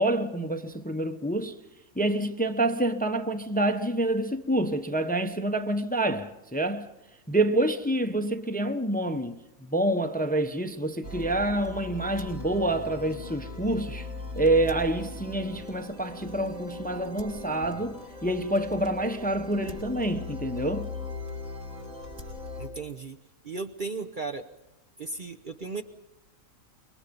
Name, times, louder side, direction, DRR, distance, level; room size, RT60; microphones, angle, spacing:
voice 1, 0.0-1.6 1.9-6.9 7.3-14.1 14.3-20.9, right 1 dB, 5° left, 0.9 m, -27 dB
sound 1, 11.0-22.7, left 2 dB, 85° right, 6.7 m, -39 dB
voice 2, 22.6-23.2 23.4-24.5 25.0-25.8, right 4 dB, 40° right, 0.9 m, -35 dB
26.0 x 23.5 x 5.4 m
omnidirectional pair, 1.4 m